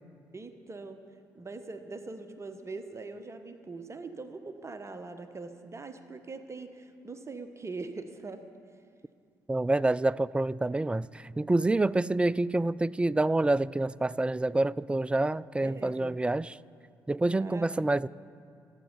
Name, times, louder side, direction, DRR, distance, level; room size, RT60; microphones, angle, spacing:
voice 1, 0.3-1.0 1.3-8.4 15.6-16.2 17.4-17.7, right 3 dB, 30° right, 8 dB, 1.1 m, -42 dB
voice 2, 9.5-16.5 17.1-18.1, right 2 dB, 10° right, 21 dB, 0.4 m, -27 dB
27.0 x 9.0 x 5.5 m, 2.3 s
hypercardioid pair, 45°, 9 cm